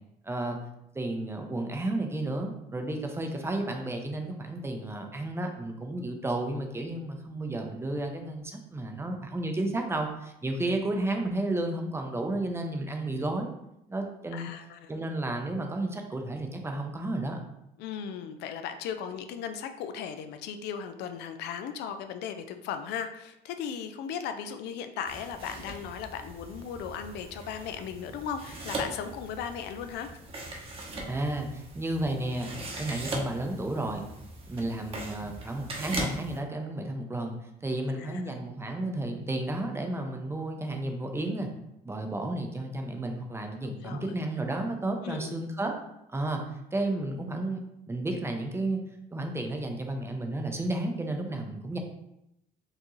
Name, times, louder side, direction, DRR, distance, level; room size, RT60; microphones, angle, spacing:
voice 1, 0.2-0.6 0.9-13.5 13.9-14.5 14.9-17.4 31.1-32.5 32.8-34.0 34.5-41.5 41.8-45.7 46.1-46.4 46.7-47.6 47.9-48.8 49.1-51.8, right 2 dB, 15° right, 3 dB, 0.6 m, -32 dB
voice 2, 14.3-14.9 17.8-30.1 38.0-38.4 43.6-44.1 45.0-45.3, left 7 dB, 80° left, 8 dB, 0.4 m, -37 dB
sound 1, 25.1-36.4, right 2 dB, 35° right, 0.9 m, -40 dB
4.6 x 2.6 x 3.0 m, 0.83 s
cardioid pair, 110°, 17 cm